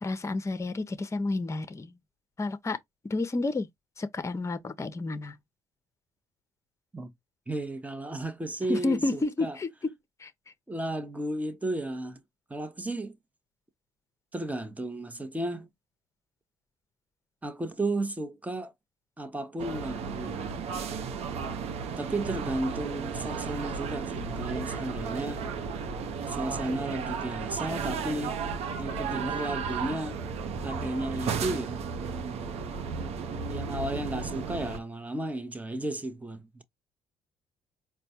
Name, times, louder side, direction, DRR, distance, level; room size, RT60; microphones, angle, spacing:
voice 1, 0.0-1.9 2.4-2.8 3.1-3.7 4.0-5.4 8.7-9.9 10.2-10.3, left 2 dB, 25° left, 0.8 m, -30 dB
voice 2, 7.5-9.6 10.7-12.2 12.5-13.2 14.3-15.7 17.4-18.7 19.2-20.6 22.0-25.5 26.3-28.4 28.8-30.2 30.6-31.8 33.0-33.1 33.5-36.6, right 1 dB, 15° right, 0.9 m, -34 dB
sound 1, 19.6-34.8, right 5 dB, 60° right, 0.7 m, -34 dB
4.3 x 2.2 x 2.8 m
supercardioid pair, 65°, 12 cm